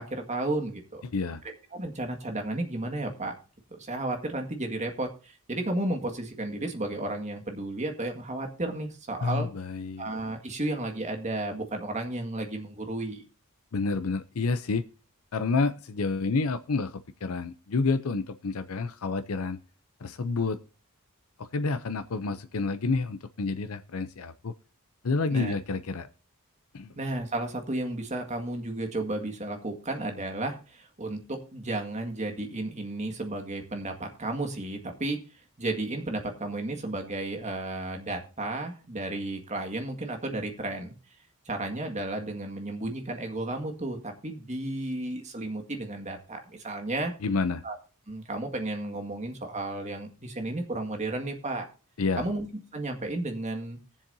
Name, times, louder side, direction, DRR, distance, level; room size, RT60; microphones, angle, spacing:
voice 1, 0.0-1.0 1.7-3.3 3.7-9.5 10.0-13.2 25.3-25.5 27.0-35.2 35.6-40.9 41.5-47.1 47.6-47.8 48.1-51.7 52.2-52.5 52.7-53.8, right 2 dB, 35° right, 4 dB, 1.9 m, -33 dB
voice 2, 9.2-10.1 13.7-14.8 15.3-19.6 20.0-20.6 21.4-24.5 25.0-26.1 26.7-26.9 47.2-47.6 52.0-52.2, left 4 dB, 75° left, 11 dB, 0.6 m, -29 dB
19.5 x 7.3 x 2.7 m, 0.35 s
head